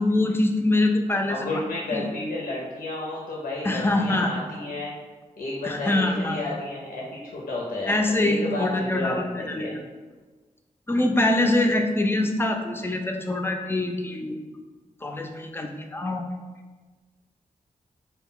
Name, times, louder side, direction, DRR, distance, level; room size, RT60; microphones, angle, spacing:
voice 1, 0.0-1.4 1.9-2.1 3.6-4.3 5.6-6.4 7.9-9.8 10.9-14.4 15.0-16.2, left 2 dB, 15° left, 4 dB, 0.4 m, -24 dB
voice 2, 1.3-4.9 5.4-9.8, left 2 dB, 75° left, -4 dB, 0.5 m, -32 dB
2.1 x 2.1 x 3.6 m, 1.3 s
cardioid pair, 40°, 15 cm